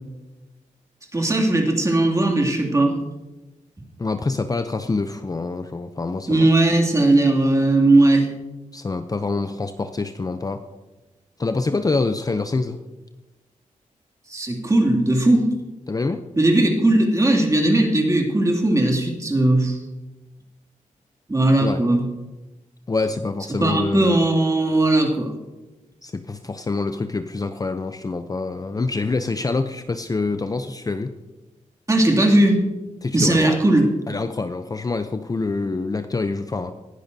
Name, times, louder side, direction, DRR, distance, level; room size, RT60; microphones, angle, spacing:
voice 1, 1.1-2.9 6.3-8.3 14.3-15.5 16.4-19.8 21.3-22.0 23.6-25.3 31.9-32.6 33.1-33.9, right 2 dB, 25° right, 0 dB, 2.5 m, -18 dB
voice 2, 4.0-6.5 8.7-10.6 11.4-12.8 15.9-16.2 21.6-21.8 22.9-24.2 26.0-31.2 33.0-33.6 34.1-36.7, left 3 dB, 25° left, 9 dB, 0.6 m, -26 dB
19.5 x 11.0 x 2.7 m, 1.1 s
cardioid pair, 70°, 14 cm